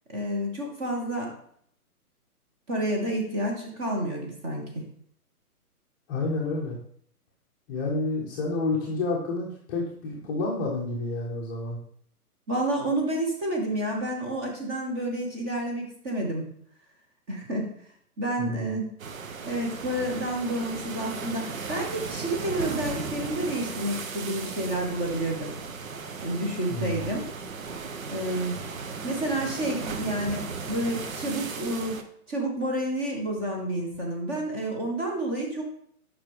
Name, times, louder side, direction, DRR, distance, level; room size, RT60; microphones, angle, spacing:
voice 1, 0.1-1.3 2.7-4.8 12.5-16.4 17.3-17.7 18.2-18.8 19.4-25.6 26.2-27.2 28.1-28.6 29.0-32.0 32.3-35.6, right 1 dB, 15° right, 0 dB, 0.9 m, -29 dB
voice 2, 6.1-6.8 7.7-11.8 18.4-18.7 26.7-27.0, left 2 dB, 15° left, -4 dB, 0.7 m, -29 dB
sound 1, 19.0-32.0, right 5 dB, 60° right, 0.9 m, -36 dB
7.2 x 5.4 x 3.3 m, 0.64 s
figure-of-eight pair, 140°, 46 cm